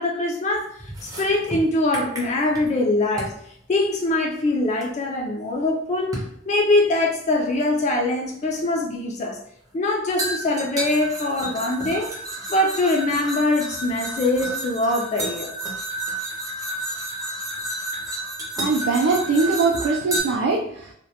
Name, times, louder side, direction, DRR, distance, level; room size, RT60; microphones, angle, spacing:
voice 1, 0.0-3.3 3.7-9.4 9.7-12.1 12.5-15.5, left 2 dB, 35° left, 0 dB, 0.3 m, -23 dB
sound 1, 0.8-2.8 3.2-3.4 4.8-4.9 6.1-6.4 7.6-7.7 10.2-20.2, right 1 dB, 20° right, 0.5 m, -31 dB
voice 2, 18.6-20.9, right 4 dB, 80° right, -1 dB, 0.3 m, -21 dB
2.1 x 2.1 x 2.7 m, 0.68 s
head